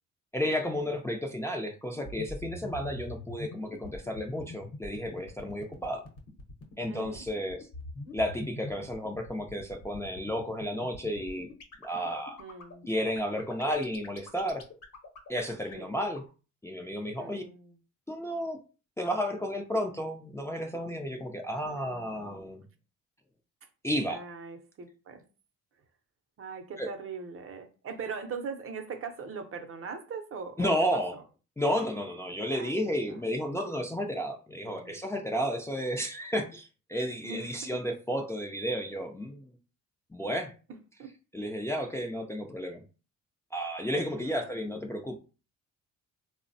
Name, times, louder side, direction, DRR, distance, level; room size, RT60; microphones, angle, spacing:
voice 1, 0.3-6.0 6.8-7.7 8.1-11.5 11.8-12.4 12.9-14.6 15.3-16.2 16.6-17.4 18.1-18.6 19.0-22.6 23.8-24.2 26.8-26.9 30.6-31.1 31.6-39.6 40.1-40.5 41.3-42.8 43.5-45.2, equal, 10° left, 0.4 m, -32 dB
sound 1, 1.9-16.3, left 2 dB, 55° left, 0.9 m, -43 dB
voice 2, 5.5-5.9 6.9-7.2 12.4-12.9 15.7-15.9 17.2-17.8 21.7-22.4 23.6-23.7 24.1-25.2 26.4-31.2 32.5-33.2 34.6-35.0 37.2-37.7 40.7-41.1 44.2-44.8, right 5 dB, 45° right, 0.6 m, -42 dB
3.3 x 2.1 x 2.6 m
cardioid pair, 90°, 30 cm